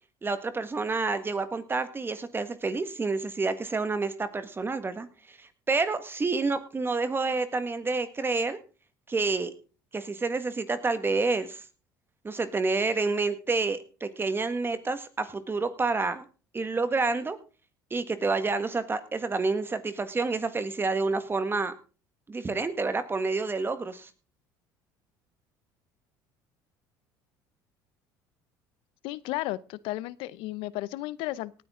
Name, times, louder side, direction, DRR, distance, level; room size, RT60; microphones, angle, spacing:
voice 1, 0.2-5.1 5.7-8.6 9.1-9.5 9.9-11.6 12.2-16.2 16.5-17.4 17.9-21.7 22.3-24.1, right 3 dB, 25° right, 1.7 m, -28 dB
voice 2, 29.0-31.6, left 17 dB, 75° left, 0.7 m, -34 dB
18.5 x 9.3 x 3.8 m
supercardioid pair, 80°, 9 cm